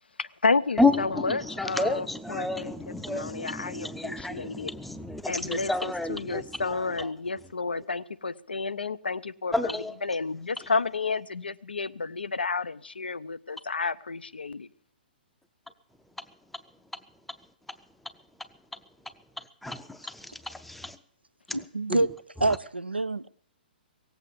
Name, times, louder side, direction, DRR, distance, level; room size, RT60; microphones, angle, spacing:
voice 1, 0.2-4.7 5.3-14.7, left 4 dB, 75° left, 0.6 m, -31 dB
voice 2, 1.3-6.4 9.5-9.9 19.6-19.8 20.5-20.9, left 2 dB, ahead, 0.6 m, -29 dB
voice 3, 21.5-22.1 22.4-23.3, right 2 dB, 85° right, 0.5 m, -26 dB
17.5 x 8.2 x 8.3 m
figure-of-eight pair, 120°, 5 cm